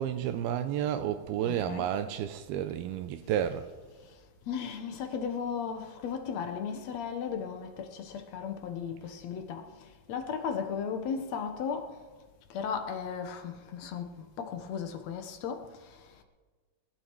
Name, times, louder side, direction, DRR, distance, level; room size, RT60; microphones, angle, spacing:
voice 1, 0.0-3.7, right 10 dB, 85° right, 2.5 m, -31 dB
voice 2, 1.4-1.9 4.5-12.0 12.5-16.2, left 6 dB, 65° left, 1.9 m, -36 dB
24.0 x 11.5 x 4.7 m
omnidirectional pair, 4.5 m